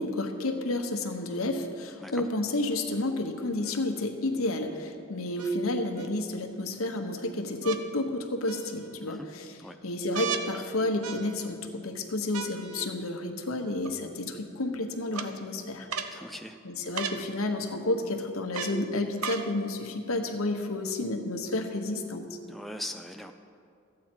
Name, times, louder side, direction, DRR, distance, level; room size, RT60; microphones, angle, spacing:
voice 1, 0.0-9.6 9.8-16.2 16.6-22.4, left 2 dB, 80° left, 5 dB, 1.0 m, -31 dB
sound 1, 3.6-3.7 5.4-6.1 7.6-7.8 8.5-9.0 10.1-10.5 11.0-11.6 12.3-12.9 13.8-13.9 15.1-15.3 15.9-16.2 16.9-17.2 18.5-18.8 19.2-19.5 20.3-20.4, right 7 dB, 90° right, 0.6 m, -36 dB
voice 2, 16.1-16.6 22.5-23.3, left 1 dB, ahead, 5 dB, 0.3 m, -40 dB
13.5 x 8.6 x 4.4 m, 2.4 s
head